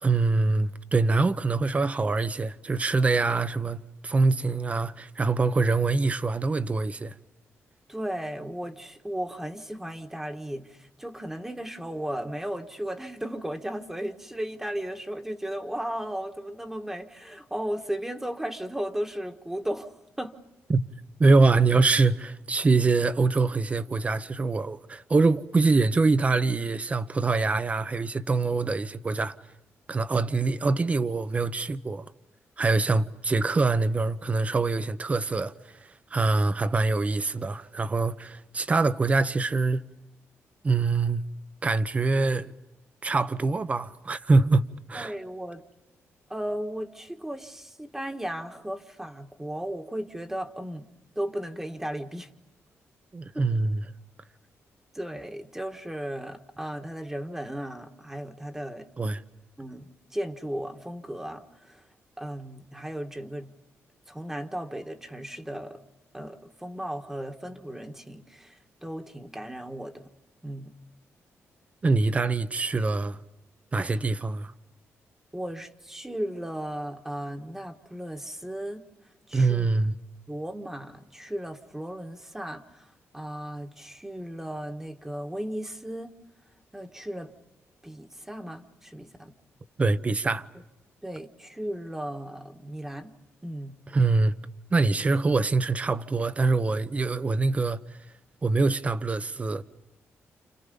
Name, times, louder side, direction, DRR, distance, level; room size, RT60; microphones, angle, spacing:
voice 1, 0.0-7.1 20.7-20.9 21.2-29.3 29.9-32.1 32.6-35.5 36.1-39.8 40.6-41.2 41.6-42.5 43.0-45.1 53.1-53.8 59.0-59.2 71.8-73.2 73.7-74.5 79.3-79.9 89.8-90.5 93.9-94.3 94.7-97.8 98.4-99.6, right 3 dB, 25° right, 0.9 m, -24 dB
voice 2, 7.9-20.4 44.9-45.6 46.3-50.9 51.1-52.3 53.3-53.5 54.9-58.9 59.6-61.9 62.2-63.5 64.1-65.8 66.1-70.1 70.4-70.7 73.8-74.0 75.3-78.9 79.3-79.7 80.3-86.1 86.7-87.3 87.8-89.3 91.0-93.1 93.4-93.8, right 1 dB, 10° right, 1.5 m, -35 dB
30.0 x 29.0 x 5.5 m
cardioid pair, 125°, 5 cm